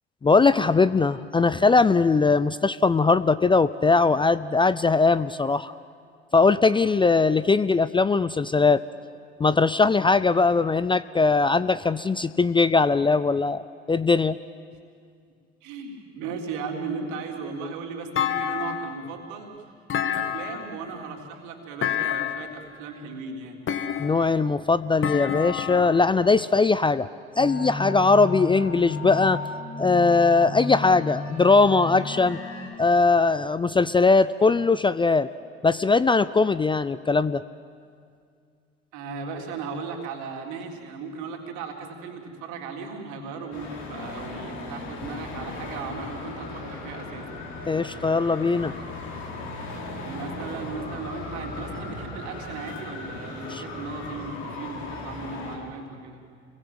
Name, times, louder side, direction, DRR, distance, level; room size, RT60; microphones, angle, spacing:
voice 1, 0.2-5.7 6.3-8.8 9.4-14.4 24.0-27.1 27.4-29.4 29.8-32.4 32.8-35.3 35.6-37.4 47.7-48.8 53.5-53.6, left 4 dB, 15° left, 16 dB, 0.6 m, -20 dB
voice 2, 15.6-19.7 20.0-23.6 38.9-47.4 50.0-56.2, right 4 dB, 65° right, 2 dB, 3.7 m, -36 dB
Thump thud, 18.2-19.1 19.9-20.8 21.8-22.6 23.7-24.4 25.0-26.0, left 9 dB, 40° left, 1.9 m, -28 dB
sound 1, 27.4-32.7, left 2 dB, 75° left, 7.2 m, -34 dB
Traffic noise roadway noise, 43.5-55.6, left 2 dB, 60° left, 5.1 m, -37 dB
29.5 x 22.5 x 7.9 m, 2.2 s
figure-of-eight pair, 60°, 32 cm